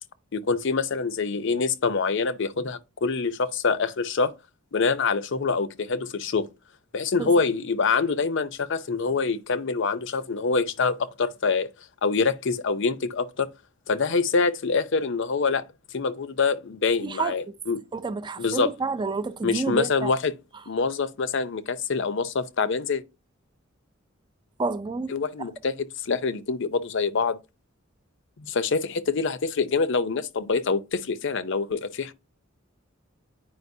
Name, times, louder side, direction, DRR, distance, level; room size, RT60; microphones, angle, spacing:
voice 1, 0.3-4.3 4.7-6.5 6.9-11.7 12.0-13.5 13.9-15.6 15.9-17.8 18.4-18.7 19.4-20.3 20.7-23.0 25.1-27.4 28.4-32.1, left 4 dB, 60° left, 0.6 m, -25 dB
voice 2, 17.0-17.4 17.9-20.1 24.6-25.1, right 4 dB, 20° right, 0.4 m, -29 dB
9.4 x 5.0 x 2.7 m
head